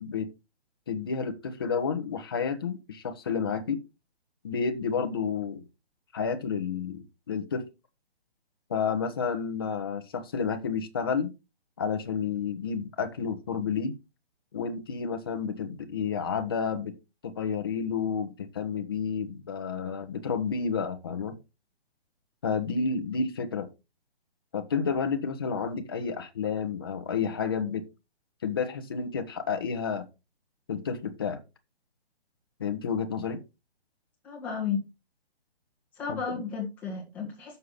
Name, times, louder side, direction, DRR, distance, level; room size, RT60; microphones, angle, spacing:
voice 1, 0.9-3.8 4.4-5.6 6.1-7.6 8.7-11.3 11.8-13.9 14.5-16.9 17.2-21.4 22.4-23.7 24.5-27.8 28.4-30.1 30.7-31.4 32.6-33.4 36.1-36.4, left 6 dB, 25° left, 0.9 m, -30 dB
voice 2, 34.2-34.8 36.0-37.6, left 6 dB, 5° left, 1.4 m, -33 dB
6.8 x 6.5 x 5.6 m
hypercardioid pair, 175°, 32 cm